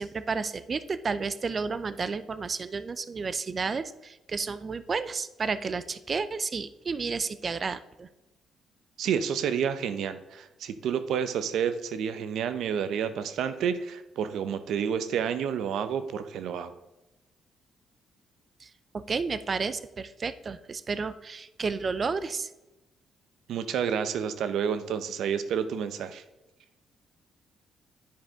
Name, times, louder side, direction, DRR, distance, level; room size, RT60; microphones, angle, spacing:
voice 1, 0.0-8.1 18.6-22.5, right 4 dB, 40° right, 14 dB, 0.5 m, -32 dB
voice 2, 9.0-16.7 23.5-26.2, right 8 dB, 75° right, 12 dB, 0.6 m, -29 dB
10.0 x 4.9 x 3.6 m, 1.0 s
cardioid pair, 90°, 0 cm